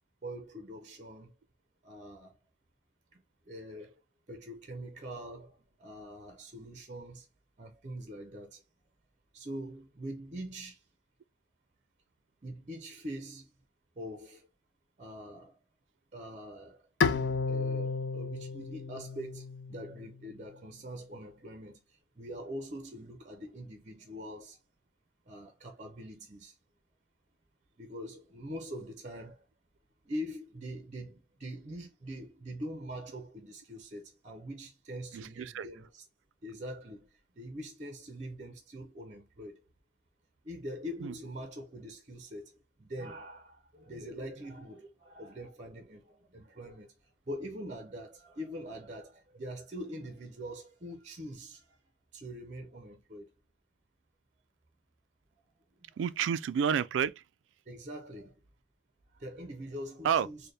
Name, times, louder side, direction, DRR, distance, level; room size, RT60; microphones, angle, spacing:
voice 1, 0.2-1.3 1.8-2.3 3.1-3.2 3.5-3.9 4.3-7.3 7.6-8.6 9.3-10.8 12.4-13.5 14.0-14.5 15.0-15.6 16.1-16.8 17.5-21.8 22.2-24.6 25.3-26.5 27.8-29.4 30.0-36.0 36.4-37.1 37.4-39.6 40.4-46.9 47.3-51.7 52.1-53.3 57.7-58.3 59.1-60.4, equal, 40° right, 0.6 m, -43 dB
Bowed string instrument, 17.0-20.2, left 5 dB, 75° left, 0.4 m, -32 dB
voice 2, 35.1-35.7 41.0-41.1 56.0-57.2 60.0-60.3, right 8 dB, 85° right, 0.3 m, -30 dB
4.4 x 2.1 x 3.3 m
head